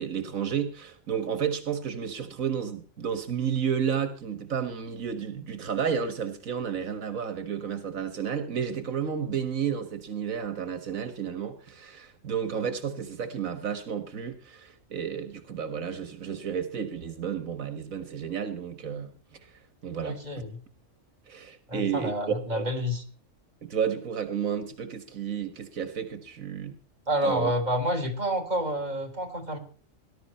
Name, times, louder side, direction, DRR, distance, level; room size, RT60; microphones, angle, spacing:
voice 1, 0.0-19.1 19.4-19.5 19.8-20.2 21.3-22.1 22.5-22.7 23.6-26.8 27.2-27.5, right 7 dB, 85° right, 10 dB, 1.9 m, -32 dB
voice 2, 20.0-20.6 21.7-23.0 27.1-29.6, equal, 30° right, 2 dB, 3.8 m, -29 dB
19.0 x 11.5 x 4.3 m, 0.40 s
omnidirectional pair, 1.4 m